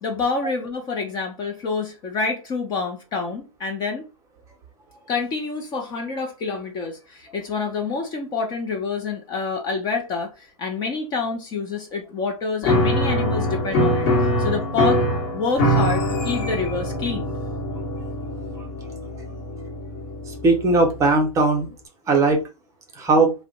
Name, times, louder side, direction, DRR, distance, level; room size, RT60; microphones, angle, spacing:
voice 1, 0.0-4.1 5.1-15.0 15.3-17.3, left 4 dB, 20° left, 0.6 m, -27 dB
Piano, 12.6-21.1, left 1 dB, 40° left, 1.0 m, -23 dB
voice 2, 20.3-21.7 22.1-22.4 23.0-23.3, right 3 dB, 15° right, 0.8 m, -18 dB
2.5 x 2.1 x 3.9 m
hypercardioid pair, 125°, 19 cm